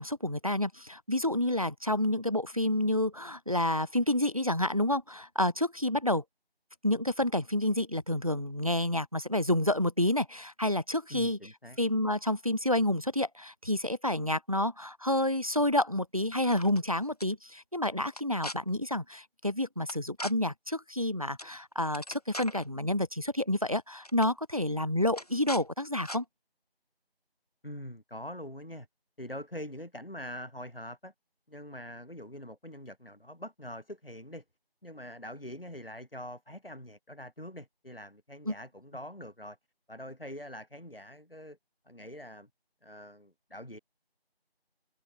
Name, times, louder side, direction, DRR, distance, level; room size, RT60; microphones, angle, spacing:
voice 1, 0.0-6.2 6.8-11.4 11.8-26.2 38.5-38.6, left 1 dB, 35° right, 1.1 m, -29 dB
voice 2, 11.1-11.8 27.6-28.9 29.2-31.1 31.5-34.4 34.8-39.6 39.9-41.6 41.9-42.5 42.8-43.8, left 1 dB, 65° left, 7.9 m, -44 dB
sound 1, 16.3-16.8 17.2-17.3 18.1-18.6 19.9-20.3 21.4-21.6 21.8-22.7 23.6-23.8 24.0-24.3 25.1-25.6 26.0-26.2, equal, 40° left, 4.7 m, -40 dB
figure-of-eight pair, 175°, 30 cm